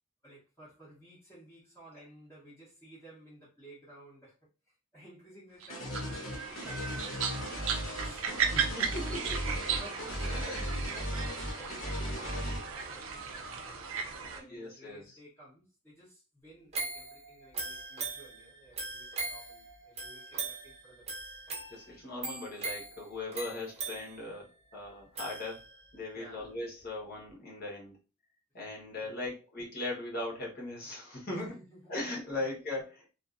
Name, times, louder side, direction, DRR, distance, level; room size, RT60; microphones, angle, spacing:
voice 1, 0.2-4.4 4.6-8.7 9.2-21.1 26.1-26.5 29.0-29.2 31.2-32.0 32.3-32.6, right 1 dB, 10° left, 0.9 m, -54 dB
sound 1, 5.6-14.4, right 6 dB, 70° right, 0.5 m, -36 dB
sound 2, 5.7-12.6, equal, 70° left, 0.9 m, -37 dB
voice 2, 8.5-9.8 10.2-10.7 14.5-15.0 21.7-27.9 28.5-31.5 31.9-33.1, left 2 dB, 45° left, 1.1 m, -39 dB
sound 3, 16.7-26.0 26.4-26.5, right 3 dB, 30° right, 0.7 m, -41 dB
2.6 x 2.6 x 2.4 m
head